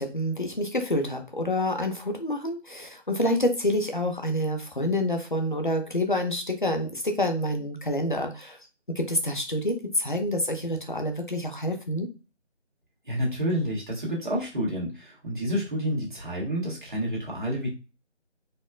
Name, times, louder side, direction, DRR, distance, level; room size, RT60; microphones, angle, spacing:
voice 1, 0.0-8.6 8.9-12.1, left 1 dB, 45° left, 5 dB, 0.5 m, -27 dB
voice 2, 13.0-17.7, equal, 45° right, -4 dB, 1.3 m, -29 dB
4.2 x 2.1 x 2.3 m, 0.31 s
figure-of-eight pair, 170°, 36 cm